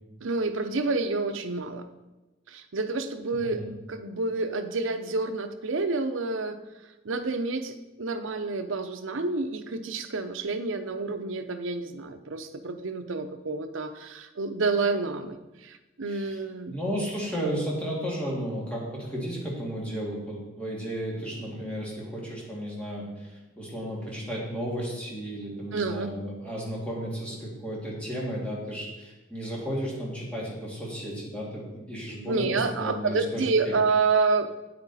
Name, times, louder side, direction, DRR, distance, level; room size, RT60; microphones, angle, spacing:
voice 1, 0.2-1.9 2.5-3.6 3.9-6.6 7.0-16.8 25.7-26.1 32.3-34.5, right 3 dB, 80° right, 9 dB, 0.7 m, -29 dB
voice 2, 16.1-16.4 16.7-33.7, equal, 5° left, -4 dB, 2.4 m, -33 dB
8.9 x 8.6 x 4.2 m, 1.1 s
head